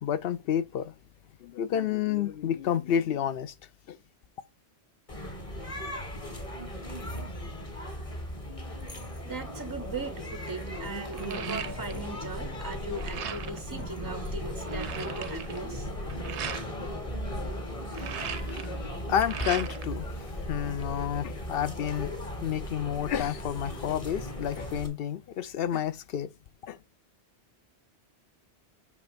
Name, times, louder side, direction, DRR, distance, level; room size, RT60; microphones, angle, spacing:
voice 1, 0.0-0.9 1.4-3.5 3.9-4.0 18.2-18.8 19.1-22.2 22.4-26.3 26.6-26.8, left 9 dB, 60° left, 0.8 m, -30 dB
sound 1, 5.1-24.9, equal, 30° left, 1.4 m, -37 dB
voice 2, 9.2-15.9, right 3 dB, 25° right, 0.5 m, -39 dB
sound 2, 9.7-10.0 10.4-12.2 12.5-13.7 14.1-14.2 14.4-16.7 17.7-19.9 20.3-21.2, right 8 dB, 80° right, 1.0 m, -39 dB
8.3 x 3.1 x 5.1 m
omnidirectional pair, 1.2 m